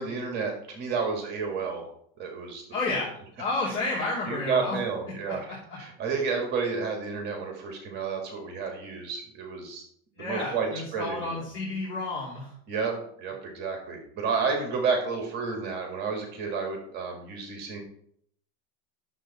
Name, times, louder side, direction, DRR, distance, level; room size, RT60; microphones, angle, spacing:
voice 1, 0.0-1.9 2.2-2.6 4.3-9.8 10.2-11.4 12.7-17.8, right 5 dB, 30° right, 2 dB, 1.9 m, -31 dB
voice 2, 2.7-4.8 5.3-5.8 10.2-12.5, left 2 dB, 45° left, -5 dB, 2.8 m, -31 dB
11.5 x 7.1 x 4.2 m, 0.67 s
supercardioid pair, 175°, 34 cm